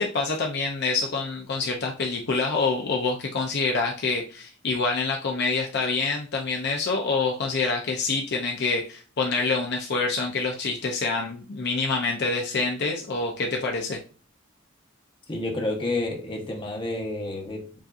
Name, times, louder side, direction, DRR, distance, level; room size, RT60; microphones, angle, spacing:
voice 1, 0.0-14.0, left 4 dB, 55° left, 0.6 m, -26 dB
voice 2, 15.3-17.8, left 2 dB, 25° left, 1.1 m, -30 dB
7.1 x 2.7 x 2.5 m
head